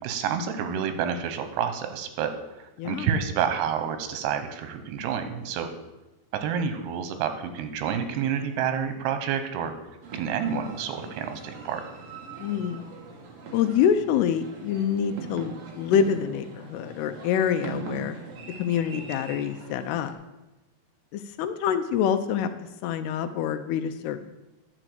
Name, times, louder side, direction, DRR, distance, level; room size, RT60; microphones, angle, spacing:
voice 1, 0.0-2.3 2.6-5.7 6.3-9.7 10.1-11.8, right 7 dB, 85° right, 8 dB, 3.0 m, -29 dB
voice 2, 2.8-3.1 12.4-12.8 13.5-18.2 18.6-20.1 21.1-22.5 22.8-24.3, left 8 dB, 85° left, 9 dB, 2.6 m, -26 dB
sound 1, 10.0-20.1, right 4 dB, 65° right, 1.5 m, -41 dB
11.0 x 5.0 x 7.7 m, 1.0 s
omnidirectional pair, 4.6 m